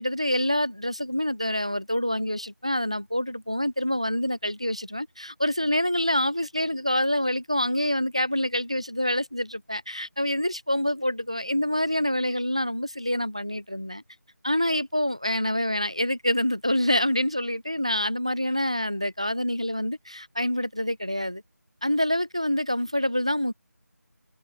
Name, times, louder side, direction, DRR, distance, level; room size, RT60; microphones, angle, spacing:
voice 1, 0.0-14.0 14.4-21.4 21.8-23.5, left 1 dB, 20° right, 0.3 m, -26 dB
figure-of-eight pair, 170°, 9 cm